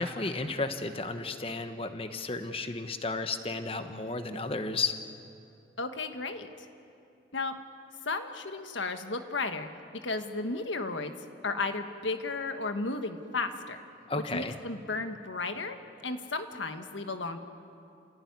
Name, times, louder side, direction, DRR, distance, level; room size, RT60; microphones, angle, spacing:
voice 1, 0.0-4.9 14.1-14.5, left 3 dB, 30° left, 8 dB, 1.2 m, -33 dB
voice 2, 5.8-6.7 7.3-7.5 8.0-9.7 10.0-11.1 11.4-13.8 14.3-15.8 16.0-17.4, left 3 dB, 85° left, 7 dB, 1.6 m, -34 dB
29.0 x 16.5 x 9.6 m, 2.6 s
head